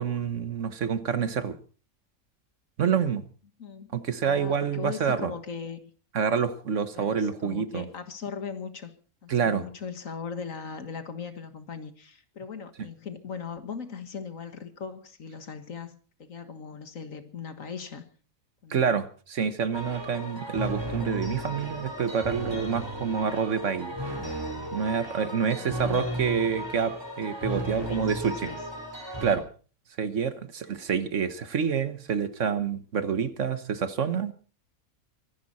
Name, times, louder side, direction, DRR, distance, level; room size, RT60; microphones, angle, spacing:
voice 1, 0.0-1.6 2.8-3.2 3.9-5.3 6.1-7.9 9.3-9.6 18.7-24.0 24.7-28.5 29.2-29.4 30.0-34.3, right 6 dB, 60° right, 12 dB, 1.5 m, -27 dB
voice 2, 3.6-3.9 4.2-5.9 6.9-8.9 9.2-18.0 18.6-18.9 25.5-26.2 27.7-28.6, left 6 dB, 65° left, 9 dB, 1.9 m, -39 dB
sound 1, 19.7-29.4, right 1 dB, 15° right, 3.9 m, -35 dB
24.0 x 11.0 x 4.2 m, 0.39 s
omnidirectional pair, 1.5 m